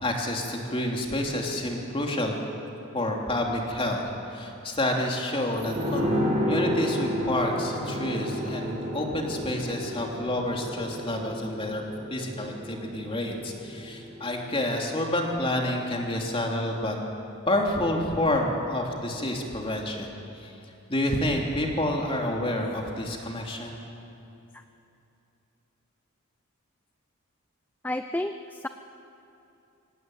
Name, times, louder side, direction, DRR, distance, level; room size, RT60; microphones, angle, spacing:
voice 1, 0.0-2.4 2.9-4.0 4.3-6.1 6.4-11.8 12.1-17.0 17.5-20.5 20.9-23.8, left 1 dB, 25° left, 0 dB, 3.1 m, -29 dB
sound 1, 5.6-14.9 15.2-15.3, equal, 30° right, 4.6 m, -31 dB
voice 2, 27.8-28.7, left 1 dB, 10° left, 8 dB, 0.5 m, -31 dB
24.5 x 17.5 x 9.3 m, 2.8 s
head